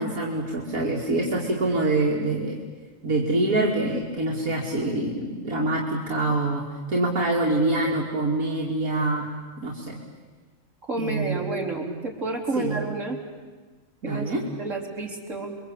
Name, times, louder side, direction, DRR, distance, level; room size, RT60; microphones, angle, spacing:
voice 1, 0.0-2.6 3.0-9.3 9.6-10.0 11.0-11.4 12.5-12.8 14.0-14.4, right 2 dB, 80° right, -3 dB, 3.1 m, -25 dB
voice 2, 10.9-13.2 14.0-15.6, right 3 dB, 60° right, 0 dB, 4.4 m, -30 dB
29.5 x 23.0 x 8.7 m, 1.4 s
omnidirectional pair, 1.5 m